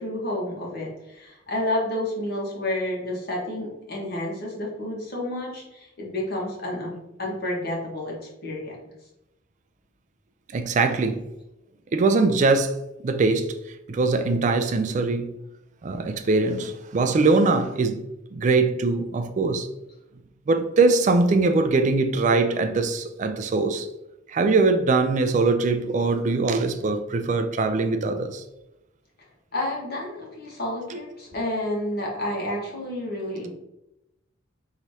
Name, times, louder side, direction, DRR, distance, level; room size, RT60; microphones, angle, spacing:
voice 1, 0.0-8.1 8.4-8.7 29.5-33.5, left 1 dB, 50° left, 1.3 m, -30 dB
voice 2, 10.5-11.2 11.9-12.8 13.0-13.5 13.9-15.3 15.8-18.0 18.3-19.7 20.5-23.9 24.3-28.4 30.9-31.0, right 3 dB, 40° right, 0.4 m, -22 dB
4.9 x 3.0 x 2.7 m
head